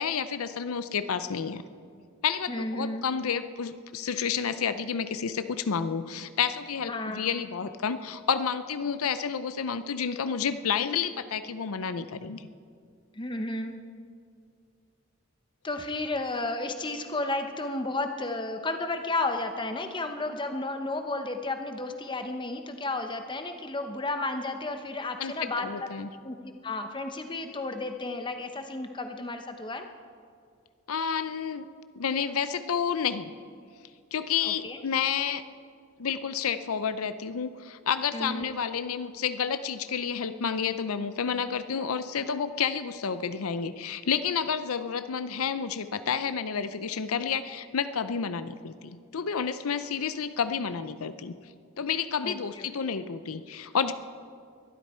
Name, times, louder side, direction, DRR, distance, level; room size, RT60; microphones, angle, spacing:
voice 1, 0.0-1.6 2.2-12.5 25.2-26.1 30.9-31.7 31.9-33.3 34.1-35.4 36.0-51.4 51.8-53.9, left 7 dB, 90° left, 12 dB, 0.6 m, -30 dB
voice 2, 2.5-3.1 6.9-7.3 13.1-13.8 15.6-26.0 26.2-29.9 34.4-34.8 38.1-38.5 52.2-52.7, left 2 dB, 20° left, 6 dB, 0.9 m, -33 dB
22.0 x 12.5 x 4.4 m, 2.2 s
head